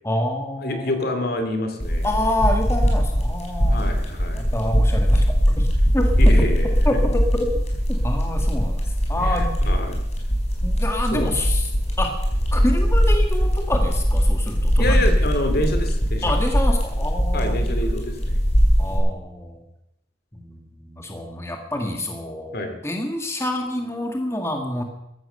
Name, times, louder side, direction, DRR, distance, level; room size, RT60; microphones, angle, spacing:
voice 1, 0.0-1.1 2.0-3.8 4.3-5.7 5.9-6.1 6.9-7.5 8.0-8.8 9.1-9.5 10.6-11.6 12.0-12.1 12.5-15.1 16.2-17.5 18.8-19.6 20.3-20.4 20.7-22.6 22.8-24.8, left 1 dB, 15° left, 3 dB, 1.7 m, -27 dB
voice 2, 0.6-2.1 3.7-4.5 6.2-7.0 9.2-10.0 11.1-11.4 14.8-16.4 17.3-18.4 22.5-22.8, left 1 dB, 55° left, 7 dB, 2.5 m, -27 dB
sound 1, 1.8-19.0, equal, 35° left, 4.5 m, -20 dB
15.0 x 12.5 x 6.7 m, 0.84 s
head